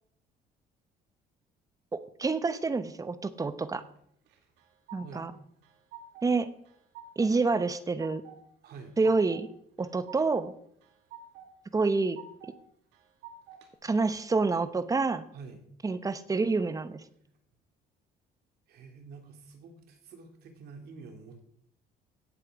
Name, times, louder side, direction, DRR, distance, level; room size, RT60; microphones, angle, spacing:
voice 1, 1.9-3.8 4.9-5.3 6.2-6.5 7.2-8.2 9.0-9.5 9.8-10.5 11.7-12.2 13.8-15.2 15.8-17.0, right 3 dB, 20° right, 13 dB, 0.9 m, -28 dB
sound 1, 4.3-5.3 5.6-6.3 6.6-7.3 7.7-8.4 8.7-9.4 9.8-10.5 10.8-11.5 11.8-12.5 12.9-13.7, right 7 dB, 90° right, 2.0 m, -49 dB
voice 2, 8.6-9.0 15.3-15.6 18.7-21.4, right 4 dB, 70° right, 4 dB, 2.8 m, -48 dB
17.0 x 7.7 x 4.8 m, 0.70 s
cardioid pair, 110°, 17 cm